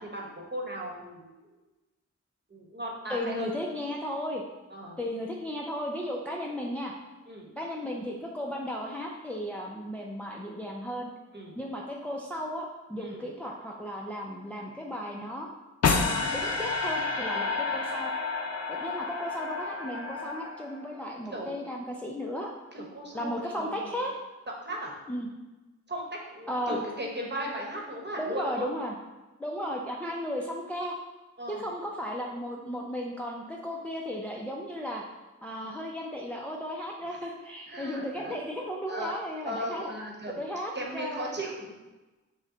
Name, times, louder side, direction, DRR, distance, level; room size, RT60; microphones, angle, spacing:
voice 1, 0.0-1.5 2.5-3.5 4.7-5.0 7.3-7.5 11.3-11.5 13.0-13.2 21.3-21.6 22.7-23.9 24.6-24.9 25.9-28.7 31.4-31.6 37.7-38.5 38.9-39.1 39.4-40.4 40.7-41.7, equal, 35° right, -1 dB, 1.1 m, -37 dB
voice 2, 3.1-4.4 5.0-6.9 7.6-11.1 11.6-15.5 16.0-18.1 18.7-22.5 23.1-24.1 25.1-25.3 26.5-26.8 27.4-27.5 28.2-28.9 29.4-31.0 31.5-35.0 35.4-39.9 40.4-41.3, equal, 5° left, -1 dB, 0.4 m, -35 dB
sound 1, 15.8-21.0, left 4 dB, 55° left, 0.5 m, -30 dB
6.2 x 2.2 x 3.8 m, 1.1 s
wide cardioid pair, 70°, 31 cm